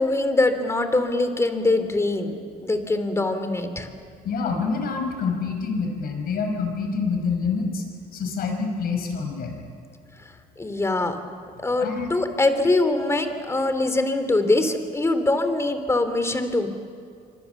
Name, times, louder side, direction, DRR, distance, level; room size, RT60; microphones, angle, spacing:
voice 1, 0.0-3.9 10.6-11.2 11.6-16.7, left 2 dB, 15° left, 8 dB, 2.8 m, -23 dB
voice 2, 4.2-7.8 8.1-9.6 11.8-12.1, left 5 dB, 60° left, 4 dB, 5.7 m, -26 dB
26.0 x 25.5 x 7.1 m, 2.3 s
cardioid pair, 110°, 17 cm